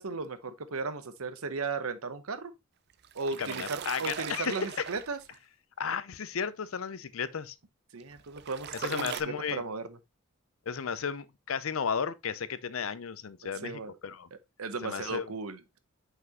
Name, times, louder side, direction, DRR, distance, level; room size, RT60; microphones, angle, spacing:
voice 1, 0.0-2.5 3.1-5.2 7.9-10.0 13.6-14.0 14.6-15.8, right 4 dB, 85° right, 0.9 m, -36 dB
sound 1, 2.9-5.4 8.0-9.2, right 8 dB, 50° right, 0.5 m, -40 dB
voice 2, 3.4-4.9 5.8-7.5 8.7-9.6 10.7-14.3 14.8-15.3, left 6 dB, 70° left, 0.6 m, -34 dB
5.9 x 5.6 x 2.9 m
head